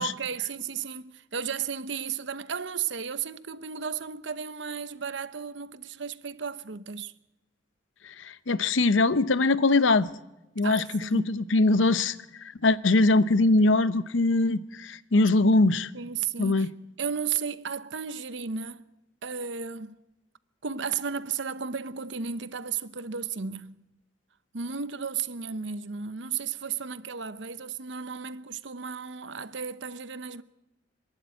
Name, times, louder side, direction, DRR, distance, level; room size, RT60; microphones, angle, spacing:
voice 1, 0.0-7.1 10.6-11.4 15.9-16.7 17.0-18.9 19.2-20.0 20.6-23.7 24.5-30.4, right 6 dB, 70° right, 0.8 m, -34 dB
voice 2, 8.0-10.1 10.6-15.9 16.4-16.7, left 2 dB, 85° left, 0.8 m, -22 dB
26.0 x 11.5 x 9.4 m
head